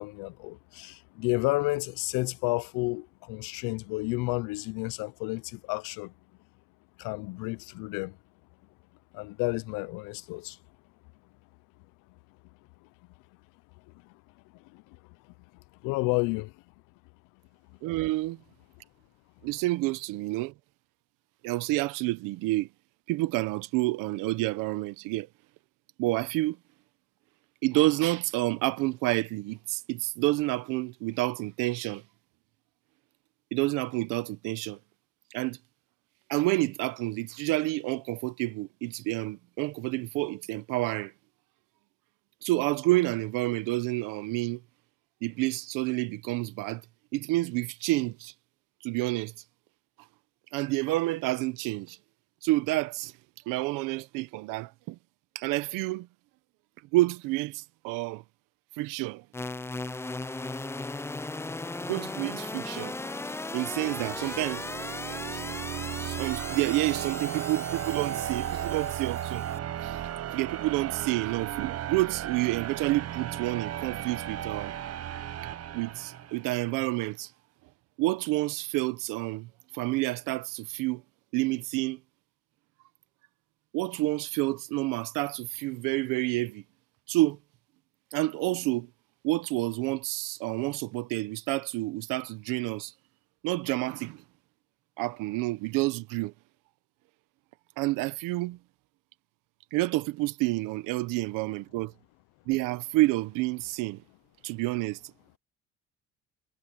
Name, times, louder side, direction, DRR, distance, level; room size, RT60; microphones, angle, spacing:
voice 1, 0.0-6.1 7.0-8.2 9.1-10.6 14.0-14.1 14.5-15.0 15.8-16.5, left 24 dB, 85° left, 0.6 m, -31 dB
voice 2, 17.8-18.4 19.4-20.5 21.4-22.7 23.1-25.3 26.0-26.6 27.6-32.0 33.5-34.8 35.3-35.6 36.3-41.1 42.4-44.6 45.2-46.8 47.1-48.3 48.8-49.3 50.5-52.0 52.4-53.1 53.5-55.0 55.3-56.1 56.9-58.2 58.8-59.2 61.8-62.9 63.5-64.6 65.1-65.4 66.0-69.5 69.8-70.0 70.3-74.7 75.7-77.3 78.0-81.0 81.3-82.0 83.7-86.6 87.1-87.4 88.1-88.9 89.2-92.9 93.4-94.2 95.0-96.3 97.8-98.6 99.7-101.9 102.5-104.0 104.4-105.0, right 19 dB, 85° right, 1.3 m, -29 dB
sound 1, 59.3-69.6, left 2 dB, 10° left, 0.5 m, -37 dB
sound 2, 63.7-76.6, right 11 dB, 50° right, 1.1 m, -35 dB
supercardioid pair, 80°, 32 cm